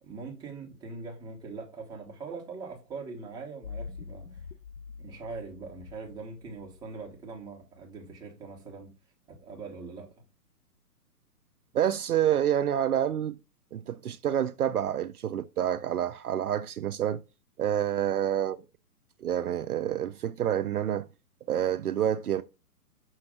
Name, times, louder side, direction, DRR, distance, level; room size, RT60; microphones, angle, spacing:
voice 1, 0.0-4.4 5.0-8.9 9.4-10.1, right 4 dB, 10° right, 1.2 m, -42 dB
sound 1, 3.6-7.2, left 5 dB, 55° left, 0.8 m, -44 dB
voice 2, 11.7-13.4 13.7-17.2 17.6-18.7 19.2-21.1 21.5-22.4, right 10 dB, 65° right, 0.5 m, -28 dB
6.2 x 3.2 x 5.0 m
figure-of-eight pair, 125°, 48 cm